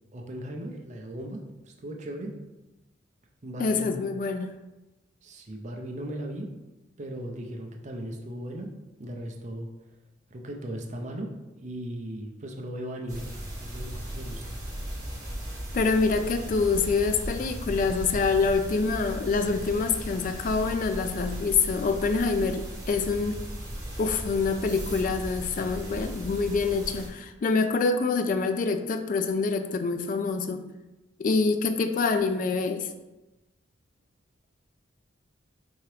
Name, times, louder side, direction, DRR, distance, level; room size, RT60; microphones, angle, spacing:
voice 1, 0.1-2.3 3.4-4.0 5.2-6.5 7.0-8.7 9.0-9.7 10.3-11.3 11.6-13.2 13.6-14.6, right 1 dB, 40° right, 2 dB, 0.5 m, -37 dB
voice 2, 3.6-4.5 15.7-23.4 24.0-30.7 31.2-32.9, left 4 dB, 45° left, 8 dB, 0.3 m, -26 dB
sound 1, 13.1-27.1, right 1 dB, 20° right, 1.4 m, -37 dB
4.6 x 2.9 x 3.1 m, 1.0 s
head